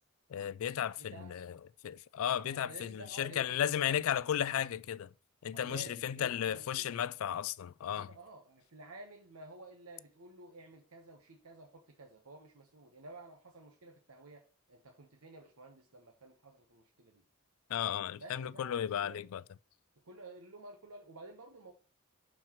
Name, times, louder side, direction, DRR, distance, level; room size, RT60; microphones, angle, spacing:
voice 1, 0.3-1.6 1.8-5.1 5.4-8.1 17.7-19.4, left 9 dB, 75° left, 0.3 m, -34 dB
voice 2, 1.0-1.4 2.4-3.9 5.5-7.0 8.0-17.2 18.2-19.2 20.0-21.7, right 2 dB, 90° right, 1.0 m, -52 dB
11.5 x 4.5 x 3.0 m
head